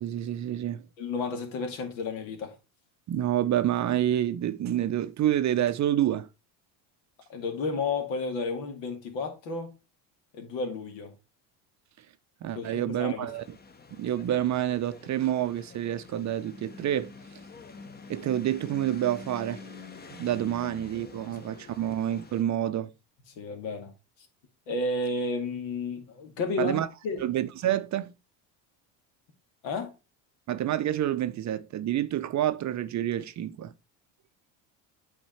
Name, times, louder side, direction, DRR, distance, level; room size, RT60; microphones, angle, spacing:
voice 1, 0.0-0.9 3.1-6.3 12.4-13.6 13.9-17.1 18.1-19.6 20.1-22.9 26.6-26.9 27.2-28.1 30.5-33.7, right 12 dB, 40° right, 0.6 m, -28 dB
voice 2, 1.0-2.5 7.3-9.7 10.3-11.1 12.5-13.3 21.3-21.5 23.4-23.9 24.7-26.8 27.0-27.2 29.6-29.9, left 3 dB, 75° left, 2.1 m, -32 dB
sound 1, 13.3-22.4, left 4 dB, 20° left, 0.8 m, -47 dB
8.5 x 3.7 x 4.3 m
supercardioid pair, 85°, 47 cm